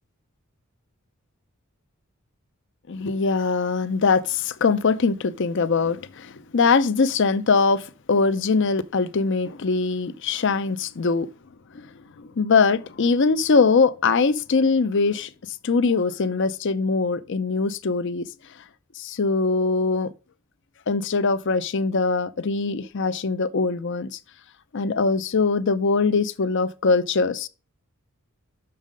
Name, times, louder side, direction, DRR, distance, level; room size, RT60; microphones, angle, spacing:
voice 1, 2.9-11.3 11.7-11.9 12.2-15.3 15.6-18.3 19.0-20.1 20.9-24.2 24.7-27.5, left 4 dB, 55° left, 0.6 m, -22 dB
6.4 x 5.5 x 5.0 m
head